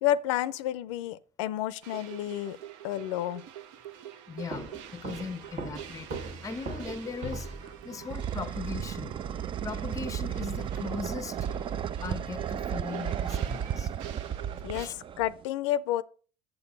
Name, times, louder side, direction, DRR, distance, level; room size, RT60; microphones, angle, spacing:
voice 1, 0.0-2.6 2.8-3.4 14.6-16.0, left 12 dB, 75° left, 0.5 m, -30 dB
sound 1, 1.8-14.9, right 11 dB, 75° right, 0.7 m, -46 dB
voice 2, 4.3-7.5 7.8-9.2 9.6-11.4 12.0-13.9 14.7-14.9, left 5 dB, 20° left, 0.5 m, -39 dB
Walk footsteps, 4.5-7.8, right 3 dB, 50° right, 1.4 m, -39 dB
sound 2, 7.5-15.4, right 9 dB, 35° right, 0.4 m, -34 dB
6.9 x 6.9 x 5.2 m
hypercardioid pair, 75°, 16 cm